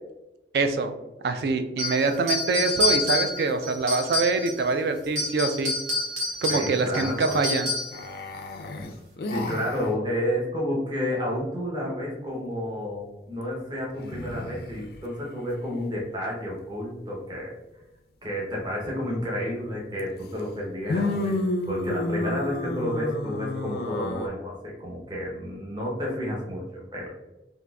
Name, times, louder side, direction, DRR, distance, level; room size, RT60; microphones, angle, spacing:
voice 1, 0.5-0.9 1.2-5.7 6.4-7.7, right 3 dB, 65° right, 8 dB, 0.3 m, -24 dB
sound 1, 1.8-4.7 5.0-8.0, left 2 dB, 80° right, 1.3 m, -28 dB
voice 2, 6.5-7.4 9.3-17.5 18.2-27.1, equal, 25° right, -3 dB, 0.7 m, -30 dB
sound 2, 7.9-9.9 14.0-15.0 20.0-20.1 20.9-24.3, left 2 dB, 60° left, 0.3 m, -31 dB
3.8 x 2.5 x 2.2 m, 1.0 s
head